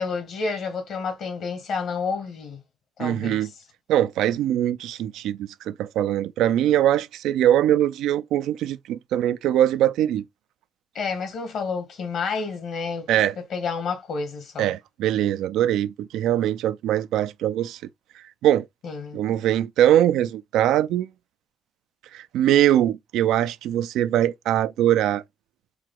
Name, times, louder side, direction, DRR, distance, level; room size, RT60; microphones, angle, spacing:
voice 1, 0.0-2.6 3.0-3.5 10.9-13.1 13.4-14.7 18.8-19.2, left 5 dB, 70° left, 1.5 m, -30 dB
voice 2, 3.0-3.5 3.9-10.2 13.1-13.3 14.6-17.8 18.4-18.7 19.1-21.1 22.1-25.2, right 12 dB, 85° right, 0.3 m, -22 dB
4.6 x 2.0 x 3.7 m
cardioid pair, 90°, 0 cm